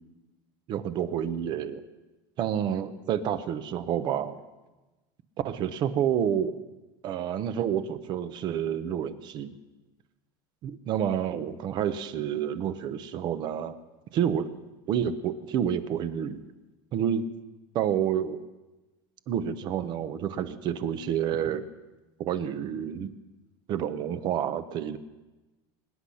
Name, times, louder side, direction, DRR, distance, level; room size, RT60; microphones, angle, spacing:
voice 1, 0.7-1.8 2.4-4.4 5.4-6.6 7.0-9.5 10.6-13.8 14.1-14.5 14.9-16.4 16.9-17.2 17.7-18.4 19.3-21.6 22.2-23.1 23.7-25.0, right 9 dB, 40° right, 12 dB, 0.9 m, -29 dB
24.0 x 10.0 x 5.7 m, 1.1 s
cardioid pair, 155°, 12 cm